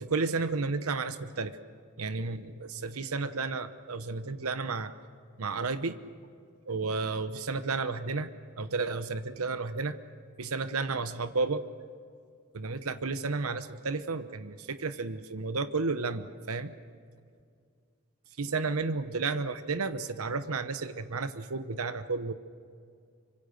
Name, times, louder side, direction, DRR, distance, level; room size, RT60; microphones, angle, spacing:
voice 1, 0.0-1.5 2.0-4.9 5.4-6.0 6.7-8.3 8.6-9.9 10.4-11.6 12.5-16.7 18.4-22.3, right 4 dB, 75° right, 11 dB, 1.0 m, -32 dB
26.0 x 25.0 x 6.6 m, 2.2 s
head